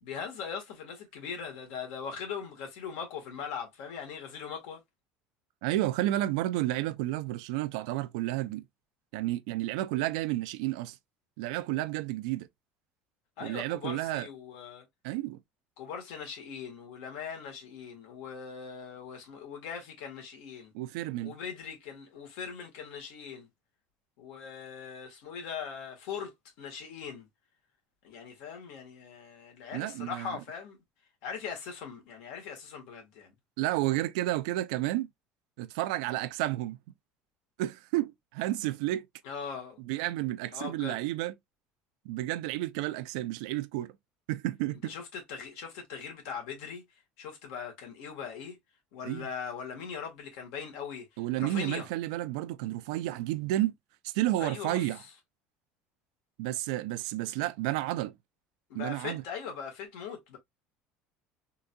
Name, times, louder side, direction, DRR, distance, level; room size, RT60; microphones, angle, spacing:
voice 1, 0.0-4.8 13.4-14.9 15.8-20.7 21.2-23.5 24.2-26.3 26.6-27.3 28.0-30.8 31.2-33.3 39.2-39.8 40.5-41.0 44.8-46.8 47.2-48.6 48.9-51.1 51.4-51.9 54.4-54.9 58.7-60.4, left 6 dB, 70° left, 1.6 m, -40 dB
voice 2, 5.6-8.6 9.1-11.0 11.4-12.5 13.4-14.3 15.0-15.4 20.7-21.3 29.7-30.4 33.6-35.1 35.6-36.8 37.6-39.1 39.8-41.3 42.1-43.9 44.3-44.9 49.0-49.3 51.2-53.7 54.0-55.0 56.4-58.1 58.7-59.2, right 15 dB, 85° right, 0.4 m, -31 dB
3.7 x 2.7 x 2.2 m
cardioid pair, 160°, 4 cm